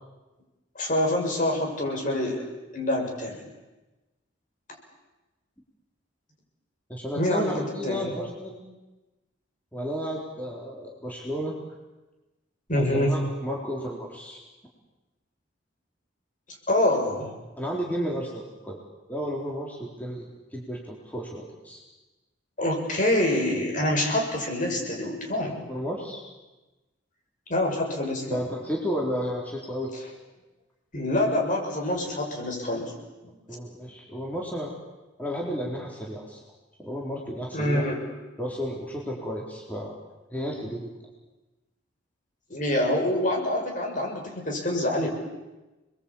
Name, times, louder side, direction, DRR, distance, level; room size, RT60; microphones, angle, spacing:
voice 1, 0.8-2.5 2.7-3.5 7.2-8.1 12.7-13.1 16.7-17.3 22.6-25.6 27.5-28.4 30.9-33.3 37.5-38.0 42.5-45.1, left 1 dB, 45° left, 1 dB, 6.9 m, -26 dB
voice 2, 6.9-8.6 9.7-11.5 12.8-14.4 17.6-18.8 19.1-21.8 25.7-26.2 28.3-29.9 33.5-34.7 35.2-36.4 36.8-37.8 38.4-39.9 40.3-40.9, equal, 10° left, -3 dB, 4.2 m, -32 dB
30.0 x 22.0 x 8.8 m, 1.1 s
head